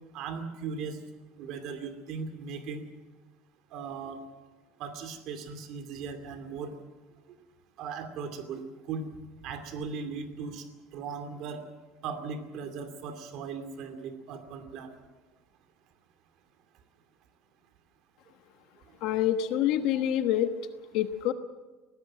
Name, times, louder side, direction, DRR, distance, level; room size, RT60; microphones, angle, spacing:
voice 1, 0.1-1.0 1.4-2.8 3.7-4.2 4.8-6.7 7.3-7.4 7.8-9.0 9.4-10.7 10.9-11.7 12.0-15.0, right 5 dB, 45° right, 7 dB, 2.5 m, -38 dB
voice 2, 19.0-20.5 20.9-21.3, left 11 dB, 50° left, 9 dB, 1.2 m, -26 dB
22.0 x 18.5 x 7.6 m, 1.2 s
cardioid pair, 175°, 0 cm